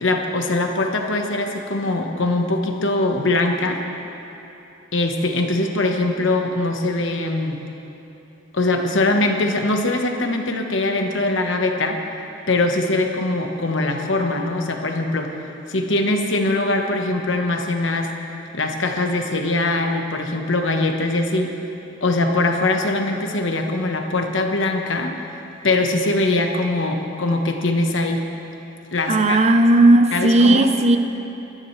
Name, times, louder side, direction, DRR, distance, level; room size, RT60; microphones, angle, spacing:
voice 1, 0.0-3.8 4.9-7.6 8.5-12.0 12.5-15.3 15.7-18.1 18.5-21.5 22.0-25.2 25.6-28.2 28.9-29.4 30.1-30.7, left 2 dB, 70° left, 3 dB, 1.2 m, -22 dB
voice 2, 29.1-31.0, right 2 dB, 35° right, 8 dB, 0.6 m, -15 dB
21.5 x 13.0 x 3.3 m, 2.9 s
head